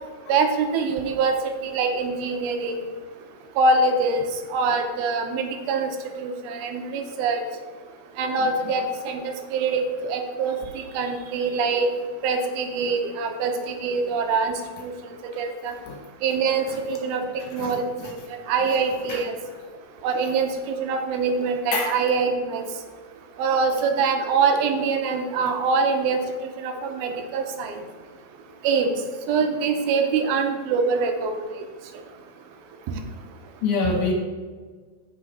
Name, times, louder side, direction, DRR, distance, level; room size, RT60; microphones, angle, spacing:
voice 1, 0.3-1.4 1.6-2.8 3.6-4.2 4.5-5.9 6.2-7.4 8.2-10.6 10.9-11.9 12.2-14.5 14.8-14.9 15.4-15.7 16.2-18.2 18.5-19.4 20.0-22.6 23.4-27.8 28.6-28.9 29.3-31.5, right 4 dB, 90° right, 5 dB, 2.6 m, -24 dB
voice 2, 33.6-34.1, left 4 dB, 70° left, -1 dB, 2.2 m, -24 dB
8.5 x 5.6 x 4.0 m, 1.5 s
omnidirectional pair, 4.3 m